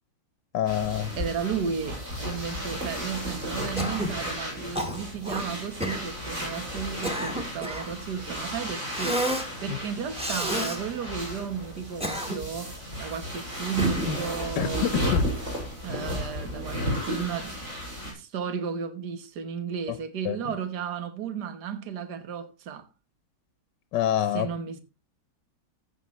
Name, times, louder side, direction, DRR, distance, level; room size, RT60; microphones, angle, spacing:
voice 1, 0.5-1.1 9.7-9.8 14.6-15.3 19.9-20.0 20.2-20.5 23.9-24.5, left 11 dB, 85° left, 1.4 m, -27 dB
sound 1, 0.7-18.1, equal, 50° right, 6.1 m, -33 dB
voice 2, 1.2-9.3 9.6-15.1 15.8-17.6 18.0-22.9 24.3-24.8, right 7 dB, 70° right, 1.8 m, -34 dB
Cough, 3.8-4.2 4.8-5.5 5.8-6.0 6.8-7.9 8.9-9.5 10.2-10.8 11.8-12.6 13.8-14.3, equal, 5° right, 1.6 m, -30 dB
14.5 x 8.0 x 3.1 m
omnidirectional pair, 1.9 m